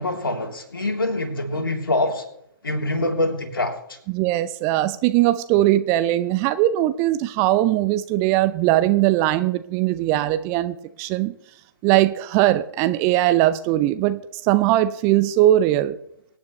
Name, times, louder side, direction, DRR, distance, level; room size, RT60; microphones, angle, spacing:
voice 1, 0.0-2.2 2.6-4.0, left 2 dB, 65° left, 2 dB, 3.1 m, -25 dB
voice 2, 4.1-11.3 11.8-16.0, right 14 dB, 20° right, 12 dB, 0.5 m, -20 dB
24.5 x 9.3 x 3.2 m, 0.74 s
figure-of-eight pair, 125°, 12 cm